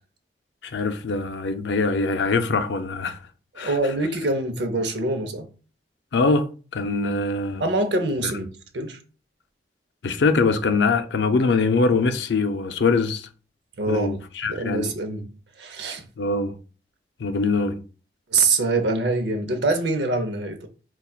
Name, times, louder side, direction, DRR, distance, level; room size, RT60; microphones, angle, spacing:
voice 1, 0.6-3.2 3.6-3.7 6.1-7.6 8.2-8.3 10.0-13.3 13.9-14.9 16.2-16.5 17.2-17.8, left 3 dB, 90° left, 0.5 m, -23 dB
voice 2, 3.6-5.5 7.6-9.0 13.8-14.1 14.5-15.2 15.6-16.1 18.3-20.7, right 2 dB, 85° right, 0.7 m, -24 dB
5.4 x 2.3 x 2.3 m
head